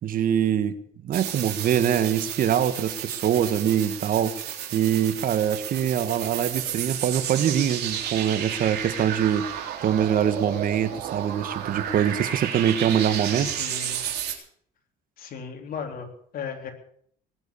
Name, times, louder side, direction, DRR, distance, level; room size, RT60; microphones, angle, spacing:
voice 1, 0.0-0.8 1.0-13.5, right 9 dB, 55° right, 12 dB, 1.5 m, -24 dB
sound 1, 1.1-14.3, right 9 dB, 75° right, 3.8 m, -32 dB
voice 2, 13.3-14.0 15.2-16.7, left 6 dB, 60° left, 4 dB, 3.7 m, -36 dB
19.5 x 8.4 x 8.4 m, 0.64 s
cardioid pair, 110°, 17 cm